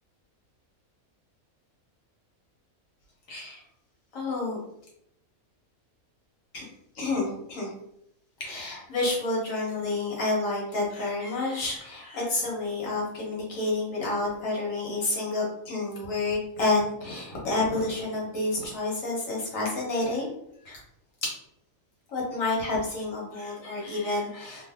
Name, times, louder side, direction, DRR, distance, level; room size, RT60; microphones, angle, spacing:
voice 1, 3.3-3.6 4.1-4.6 6.5-6.6 6.9-7.7 8.4-20.3 20.6-20.8 22.1-24.6, left 2 dB, 65° left, -3 dB, 1.5 m, -29 dB
3.1 x 2.1 x 3.5 m, 0.77 s
omnidirectional pair, 1.5 m